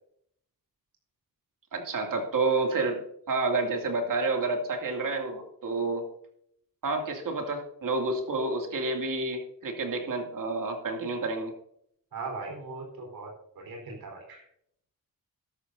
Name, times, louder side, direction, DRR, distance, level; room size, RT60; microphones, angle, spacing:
voice 1, 1.7-6.0 6.8-11.5, right 3 dB, 65° right, 3 dB, 2.5 m, -29 dB
voice 2, 12.1-13.3 13.6-14.4, right 3 dB, 85° right, 0 dB, 4.1 m, -39 dB
13.0 x 12.5 x 2.7 m, 0.71 s
wide cardioid pair, 125°, 35 cm